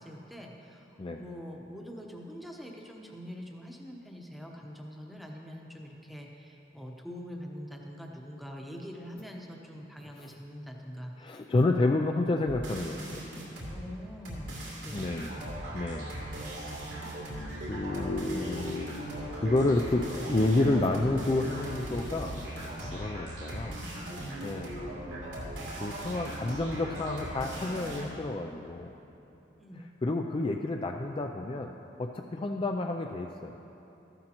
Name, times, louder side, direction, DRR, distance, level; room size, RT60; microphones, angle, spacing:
voice 1, 0.0-11.3 13.7-15.1 29.6-29.8, equal, ahead, 0 dB, 0.9 m, -44 dB
voice 2, 11.2-13.2 14.9-15.4 15.7-16.1 17.7-22.4 22.6-23.8 24.1-24.7 25.8-28.9 30.0-31.7 32.0-33.6, left 2 dB, 30° left, 3 dB, 0.4 m, -30 dB
sound 1, 12.5-13.8 14.2-28.0, right 1 dB, 85° right, 2.7 m, -39 dB
14.0 x 11.5 x 3.0 m, 3.0 s
head